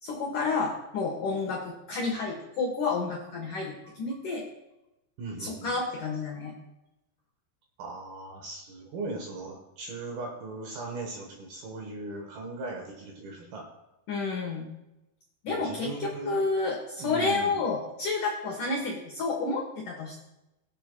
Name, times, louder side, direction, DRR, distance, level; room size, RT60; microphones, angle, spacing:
voice 1, 0.0-4.4 5.4-6.5 14.1-14.7 15.4-20.2, left 3 dB, 85° left, 0 dB, 1.8 m, -30 dB
voice 2, 5.2-5.8 7.8-13.7 15.5-16.4 17.0-17.6, right 3 dB, 70° right, 1 dB, 2.4 m, -38 dB
22.0 x 8.0 x 2.3 m, 0.95 s
omnidirectional pair, 5.8 m